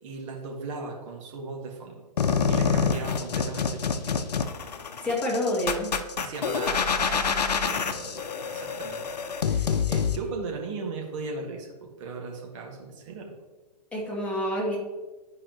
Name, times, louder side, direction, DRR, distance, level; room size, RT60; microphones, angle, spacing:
voice 1, 0.0-2.0 2.5-4.3 6.2-9.1 9.4-13.4, right 4 dB, 45° right, 0 dB, 1.8 m, -38 dB
sound 1, 2.2-10.2, left 6 dB, 75° left, 0.7 m, -27 dB
voice 2, 5.0-5.9 9.5-9.7 13.9-14.8, left 1 dB, 5° left, -4 dB, 2.0 m, -28 dB
11.5 x 4.8 x 3.0 m, 1.2 s
figure-of-eight pair, 120°, 21 cm